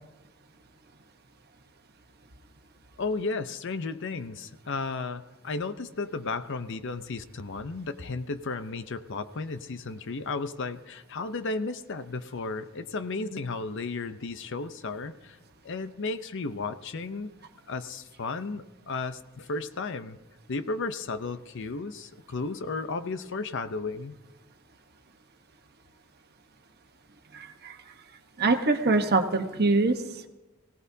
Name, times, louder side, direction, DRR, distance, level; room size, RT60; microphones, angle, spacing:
voice 1, 3.0-15.4 15.6-17.3 17.7-20.2 20.5-24.1, left 3 dB, 60° left, 11 dB, 0.7 m, -34 dB
voice 2, 27.3-27.8 28.4-30.2, right 3 dB, 50° right, 6 dB, 1.1 m, -24 dB
24.0 x 17.0 x 2.8 m, 1.1 s
head